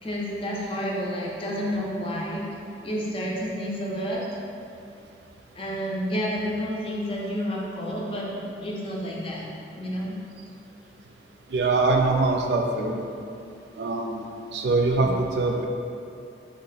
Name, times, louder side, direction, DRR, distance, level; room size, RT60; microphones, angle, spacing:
voice 1, 0.0-2.4 2.8-4.2 5.5-9.5 9.8-10.2 15.0-15.1, equal, 30° left, -3 dB, 0.5 m, -30 dB
voice 2, 11.5-13.0 13.8-14.3 14.5-15.7, right 3 dB, 70° right, 1 dB, 0.4 m, -23 dB
3.1 x 2.9 x 4.0 m, 2.6 s
head